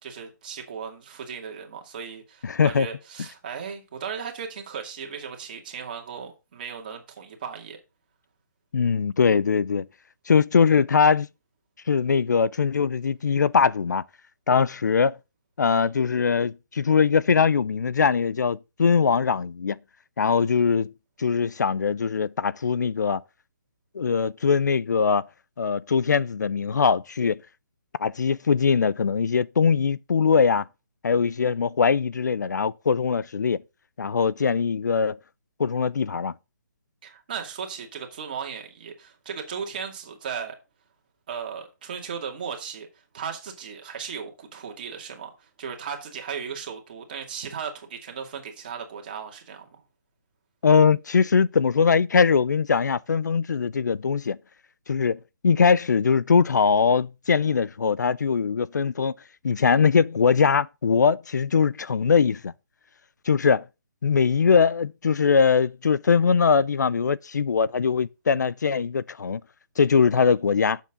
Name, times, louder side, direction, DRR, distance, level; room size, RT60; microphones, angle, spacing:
voice 1, 0.0-7.8 37.0-40.6 41.3-42.9 43.1-49.7, right 6 dB, 30° right, 2.3 m, -36 dB
voice 2, 2.4-2.9 8.7-9.9 10.3-11.3 11.9-14.0 14.5-15.2 15.6-19.8 20.2-20.9 21.2-23.2 23.9-25.2 25.6-27.4 28.0-30.6 31.0-33.6 34.0-35.2 35.6-36.3 50.6-54.4 54.9-59.1 59.4-62.5 63.3-63.6 64.0-69.4 69.8-70.8, left 5 dB, 65° left, 0.5 m, -21 dB
11.0 x 7.3 x 3.7 m
hypercardioid pair, 175°, 10 cm